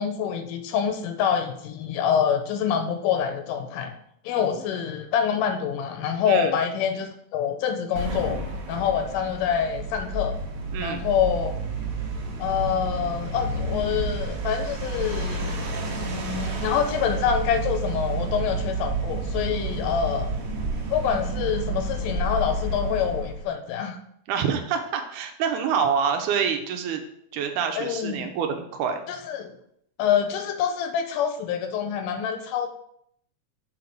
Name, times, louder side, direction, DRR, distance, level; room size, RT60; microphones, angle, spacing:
voice 1, 0.0-3.9 4.3-8.4 8.7-10.4 10.8-11.5 12.4-15.7 16.1-20.3 20.9-24.0 27.8-28.3 29.1-29.5 30.0-32.7, left 8 dB, 85° left, 7 dB, 2.2 m, -26 dB
sound 1, 8.0-23.5, right 2 dB, 60° right, 1.6 m, -30 dB
voice 2, 10.7-11.1 24.3-27.0 27.3-29.0, right 7 dB, 80° right, 6 dB, 2.1 m, -26 dB
6.8 x 3.9 x 4.5 m, 0.71 s
omnidirectional pair, 3.8 m